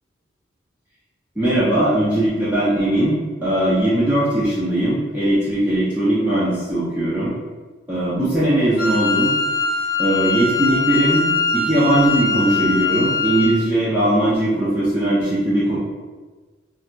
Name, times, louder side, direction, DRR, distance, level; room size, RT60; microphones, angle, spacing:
voice 1, 1.4-7.3 7.9-9.3 10.0-15.8, right 1 dB, 10° right, -10 dB, 0.5 m, -19 dB
Wind instrument woodwind instrument, 8.8-13.6, left 4 dB, 50° left, 0.6 m, -22 dB
4.0 x 2.4 x 2.2 m, 1.3 s
head